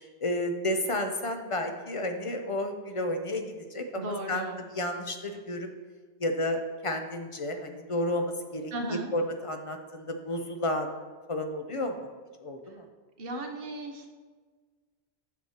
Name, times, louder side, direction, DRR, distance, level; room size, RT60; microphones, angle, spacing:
voice 1, 0.2-4.5 4.7-5.7 6.2-11.0 11.3-12.1 12.4-12.8, left 1 dB, 40° left, 5 dB, 0.5 m, -31 dB
voice 2, 4.0-4.6 8.7-9.1 13.2-14.1, right 1 dB, 60° right, 3 dB, 1.0 m, -35 dB
9.2 x 6.2 x 2.9 m, 1.4 s
omnidirectional pair, 1.1 m